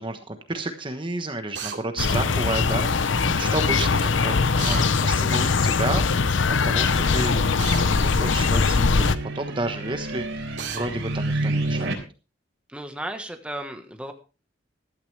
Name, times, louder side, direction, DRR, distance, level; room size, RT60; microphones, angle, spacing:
voice 1, 0.0-7.4 8.0-9.0 9.3-12.0, right 2 dB, 25° right, 7 dB, 1.2 m, -31 dB
Drill, 1.5-1.8 4.6-4.9 7.6-7.9 10.6-10.8, right 7 dB, 60° right, 2.7 m, -32 dB
sound 1, 2.0-9.2, left 4 dB, 70° left, 0.7 m, -21 dB
sound 2, 7.1-11.9, right 2 dB, 90° right, 3.6 m, -31 dB
voice 2, 12.7-14.1, right 1 dB, 5° right, 5 dB, 1.3 m, -34 dB
15.0 x 12.5 x 3.3 m, 0.34 s
head